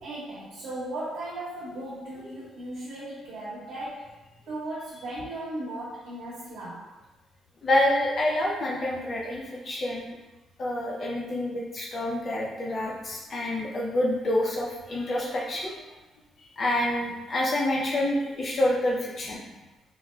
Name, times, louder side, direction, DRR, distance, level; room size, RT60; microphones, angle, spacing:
voice 1, 0.0-4.1 4.5-6.9, right 1 dB, 85° right, -11 dB, 0.9 m, -37 dB
voice 2, 7.6-10.1 10.6-15.8 16.6-19.4, left 1 dB, 45° left, -3 dB, 0.5 m, -27 dB
3.9 x 2.0 x 2.2 m, 1.1 s
cardioid pair, 90°, 0 cm